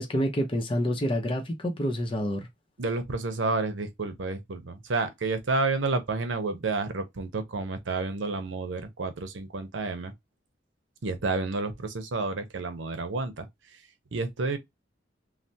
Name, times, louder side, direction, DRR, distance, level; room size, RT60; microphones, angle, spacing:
voice 1, 0.0-2.5, equal, 30° left, 0.7 m, -28 dB
voice 2, 2.8-10.1 11.0-13.5 14.1-14.6, right 3 dB, 80° right, 0.7 m, -30 dB
3.2 x 2.1 x 2.7 m
head